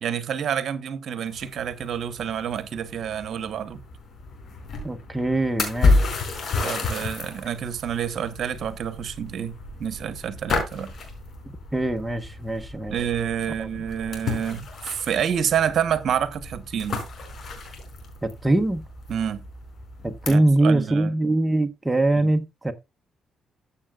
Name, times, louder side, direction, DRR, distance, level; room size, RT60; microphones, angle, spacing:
voice 1, 0.0-3.8 6.6-9.5 9.8-10.9 12.9-17.0 19.1-19.4 20.3-21.1 22.2-22.3, right 8 dB, 65° right, 1.1 m, -28 dB
sound 1, 1.3-20.3, left 3 dB, 55° left, 5.2 m, -31 dB
voice 2, 4.8-6.1 11.7-13.0 13.6-13.7 18.2-18.8 20.0-22.7, right 2 dB, 10° right, 1.2 m, -23 dB
14.5 x 7.3 x 2.4 m
cardioid pair, 90°, 0 cm